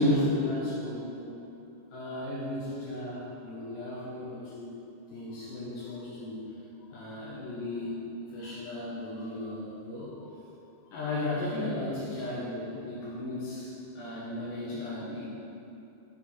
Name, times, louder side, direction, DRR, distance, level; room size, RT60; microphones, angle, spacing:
voice 1, 0.0-1.3 1.9-4.8 5.1-6.4 6.9-10.4 10.9-15.3, left 1 dB, 75° left, -9 dB, 2.0 m, -34 dB
7.9 x 6.4 x 4.4 m, 2.8 s
omnidirectional pair, 5.8 m